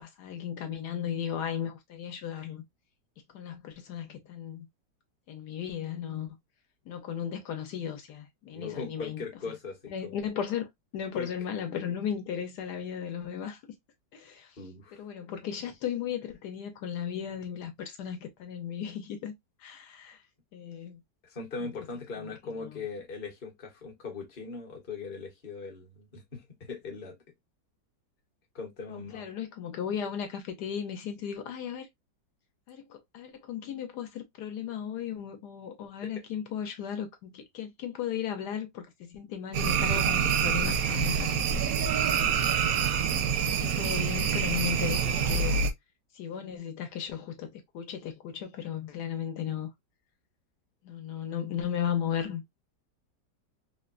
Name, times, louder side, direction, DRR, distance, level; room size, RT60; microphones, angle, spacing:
voice 1, 0.0-2.6 3.3-4.7 5.3-6.4 6.9-9.2 9.9-10.7 10.9-13.6 14.1-14.6 14.9-19.3 19.6-20.2 20.5-21.0 21.6-21.7 22.4-22.8 28.9-31.9 32.7-41.4 42.1-42.4 43.4-45.7 46.1-49.7 50.8-52.4, left 8 dB, 70° left, 1.2 m, -36 dB
voice 2, 8.5-10.2 11.1-11.3 11.7-11.8 14.6-15.0 21.2-27.2 28.5-29.3 36.0-36.1, left 4 dB, 35° left, 1.0 m, -40 dB
sound 1, 39.5-45.7, right 7 dB, 70° right, 0.8 m, -26 dB
3.6 x 2.2 x 2.3 m
omnidirectional pair, 1.9 m